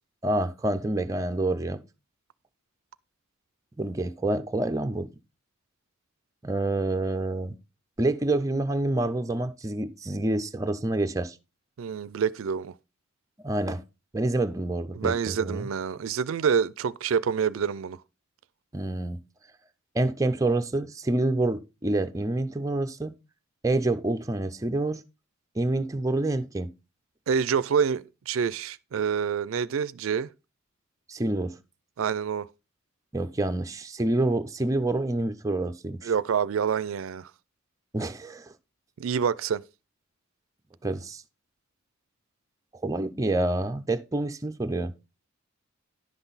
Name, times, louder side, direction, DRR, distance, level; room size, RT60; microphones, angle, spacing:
voice 1, 0.2-1.8 3.8-5.1 6.4-7.6 8.0-11.4 13.4-13.8 14.1-15.7 18.7-19.2 19.9-23.1 23.6-25.0 25.6-26.7 31.1-31.6 33.1-36.1 37.9-38.5 40.8-41.2 42.8-44.9, right 2 dB, 15° right, 0.5 m, -27 dB
voice 2, 11.8-12.7 14.9-18.0 27.3-30.3 32.0-32.5 36.0-37.3 39.0-39.6, right 7 dB, 75° right, 0.4 m, -27 dB
10.5 x 5.9 x 4.0 m
head